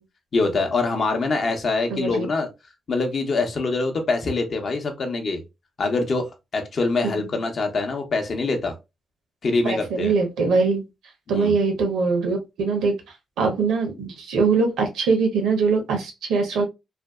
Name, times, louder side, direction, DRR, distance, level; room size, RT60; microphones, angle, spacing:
voice 1, 0.3-2.5 2.9-5.4 5.8-6.3 6.5-8.8 9.4-10.1 11.3-11.6, left 3 dB, 55° left, 0.7 m, -24 dB
voice 2, 1.9-2.3 9.6-10.8 11.3-12.9 13.4-16.6, right 4 dB, 80° right, 0.6 m, -22 dB
2.5 x 2.2 x 2.2 m
supercardioid pair, 50°, 0 cm